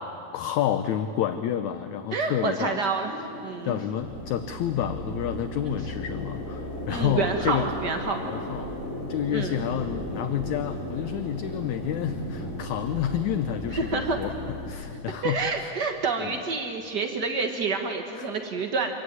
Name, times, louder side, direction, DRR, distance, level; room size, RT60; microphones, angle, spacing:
voice 1, 0.3-2.8 3.6-7.7 8.2-14.3 14.7-15.7 16.2-16.4 18.2-18.3, left 10 dB, 75° left, 9 dB, 1.8 m, -29 dB
voice 2, 2.1-3.1 3.4-3.8 5.6-5.7 6.9-8.2 9.3-9.6 13.7-14.2 15.2-18.9, right 4 dB, 70° right, 4 dB, 0.9 m, -28 dB
sound 1, 2.9-14.7, equal, 15° left, 3.8 m, -37 dB
sound 2, 4.0-14.8, equal, 25° right, 5.7 m, -40 dB
26.0 x 22.5 x 9.7 m, 2.7 s
omnidirectional pair, 4.1 m